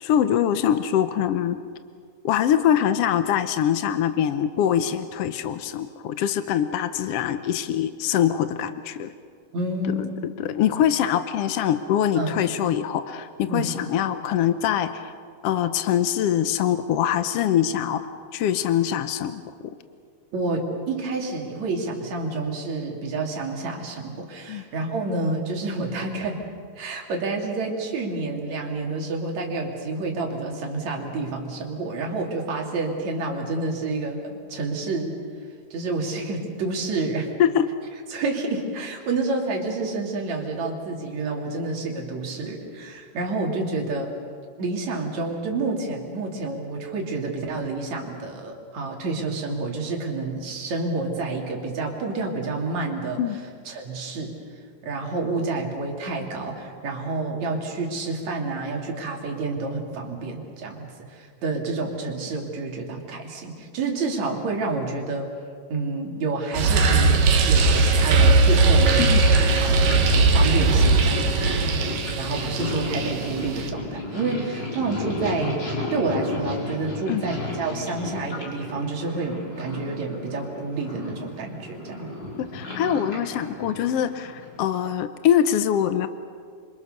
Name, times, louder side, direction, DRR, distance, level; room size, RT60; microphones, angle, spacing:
voice 1, 0.0-1.6 2.2-9.1 10.0-10.1 10.4-15.1 15.4-19.4 24.5-24.6 37.4-37.7 53.2-53.4 69.0-69.2 69.9-70.0 77.1-77.2 82.5-86.1, left 10 dB, 75° left, 10 dB, 1.4 m, -23 dB
voice 2, 9.5-10.2 12.2-12.3 13.5-13.7 20.3-26.4 26.8-35.2 35.7-37.3 38.1-44.1 44.6-53.2 53.7-54.4 54.8-65.3 65.7-69.2 69.6-75.6 75.9-82.1, right 3 dB, 60° right, 0 dB, 4.1 m, -29 dB
sound 1, 66.5-73.7, right 3 dB, 85° right, 3.3 m, -19 dB
Purr, 67.1-84.7, left 2 dB, 30° left, 5.6 m, -34 dB
28.5 x 25.0 x 6.7 m, 2.1 s
omnidirectional pair, 3.7 m